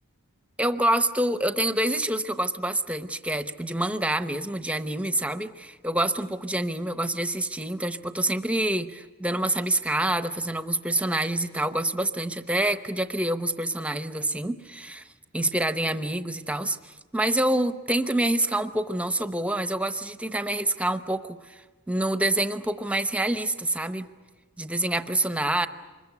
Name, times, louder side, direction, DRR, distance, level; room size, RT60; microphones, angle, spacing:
voice 1, 0.6-15.0 15.3-21.6 21.9-24.1 24.6-25.7, right 1 dB, 5° right, 10 dB, 0.8 m, -27 dB
25.0 x 21.5 x 8.3 m, 1.3 s
head